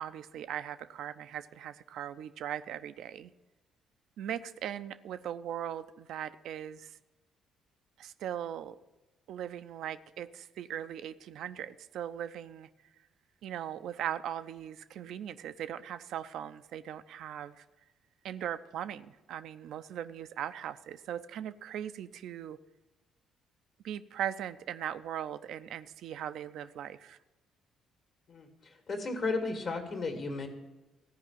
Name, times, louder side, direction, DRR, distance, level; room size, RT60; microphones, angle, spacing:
voice 1, 0.0-3.3 4.2-7.0 8.0-8.8 9.3-12.7 13.4-17.6 18.2-22.6 23.8-27.2, right 10 dB, 65° right, 11 dB, 0.4 m, -39 dB
voice 2, 28.9-30.5, left 3 dB, 55° left, 4 dB, 2.0 m, -33 dB
14.5 x 4.9 x 8.9 m, 1.1 s
hypercardioid pair, 45°, 0 cm